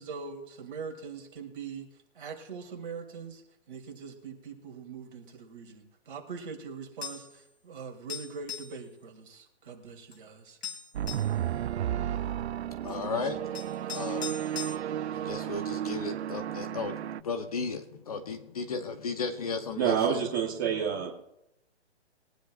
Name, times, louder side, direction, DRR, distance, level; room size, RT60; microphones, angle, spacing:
voice 1, 0.0-1.9 2.1-3.4 3.7-10.6, right 5 dB, 50° right, 1 dB, 3.0 m, -42 dB
sound 1, 7.0-7.3 8.1-8.8 10.1-10.2 10.6-11.3 12.9-13.0 13.5-14.8, left 7 dB, 65° left, 2.9 m, -39 dB
sound 2, 10.9-17.2, right 11 dB, 75° right, 0.5 m, -33 dB
voice 2, 12.8-13.6 13.9-14.3 15.1-20.2, left 4 dB, 35° left, 7 dB, 0.9 m, -35 dB
voice 3, 19.8-21.1, right 8 dB, 20° right, -4 dB, 1.1 m, -27 dB
22.5 x 10.0 x 2.5 m, 0.83 s
hypercardioid pair, 170°, 34 cm